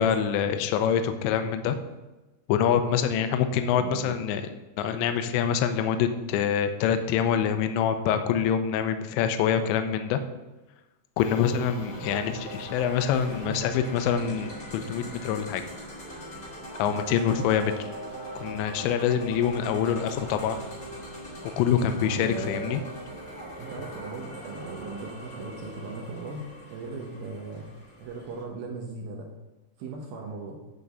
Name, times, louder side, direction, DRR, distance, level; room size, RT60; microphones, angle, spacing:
voice 1, 0.0-1.8 2.5-4.4 4.8-10.2 11.2-15.6 16.8-17.7 18.4-20.6 21.6-22.8, left 8 dB, 85° left, 8 dB, 2.8 m, -25 dB
voice 2, 3.7-4.2 12.1-12.3 13.3-13.6 22.0-22.8 23.6-27.7 28.0-29.3 29.8-30.6, right 3 dB, 70° right, 0 dB, 2.4 m, -38 dB
sound 1, 11.2-28.4, right 1 dB, 30° left, 1.0 m, -41 dB
11.0 x 4.9 x 6.8 m, 1.1 s
omnidirectional pair, 5.5 m